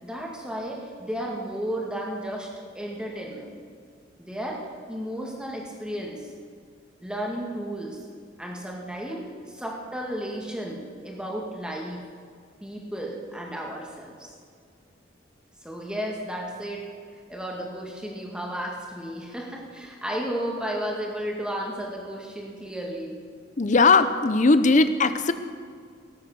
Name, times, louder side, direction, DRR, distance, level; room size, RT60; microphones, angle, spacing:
voice 1, 0.0-2.5 2.7-3.5 4.2-4.6 4.9-6.3 7.0-8.0 8.4-12.0 12.6-14.3 15.6-16.9 17.3-23.2, equal, 5° right, -2 dB, 2.0 m, -33 dB
voice 2, 23.6-25.3, left 3 dB, 40° left, 12 dB, 0.6 m, -19 dB
18.0 x 8.3 x 6.2 m, 2.1 s
head